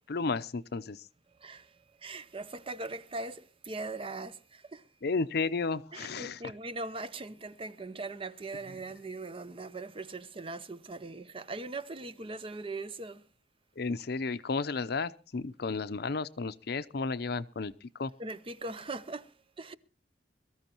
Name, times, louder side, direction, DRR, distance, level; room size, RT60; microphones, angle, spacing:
voice 1, 0.1-1.1 5.0-6.4 13.8-18.1, left 4 dB, 60° left, 0.7 m, -33 dB
voice 2, 1.4-4.8 5.9-13.2 18.2-19.7, right 2 dB, 30° right, 0.7 m, -40 dB
22.5 x 14.0 x 3.0 m
head